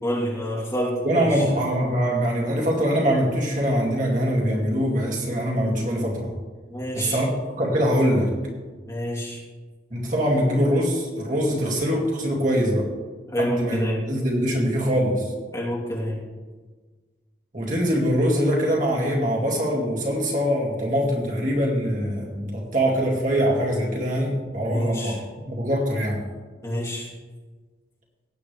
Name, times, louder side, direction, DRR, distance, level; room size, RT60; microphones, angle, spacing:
voice 1, 0.0-1.5 6.7-7.2 8.8-9.4 13.3-14.0 15.5-16.2 24.6-25.2 26.6-27.1, equal, 20° left, -5 dB, 3.0 m, -28 dB
voice 2, 1.0-6.3 6.9-7.3 7.6-8.3 9.9-12.9 13.4-13.8 14.1-15.3 17.5-25.2 25.5-26.2, equal, 45° right, -2 dB, 2.3 m, -23 dB
18.0 x 8.6 x 3.3 m, 1.4 s
head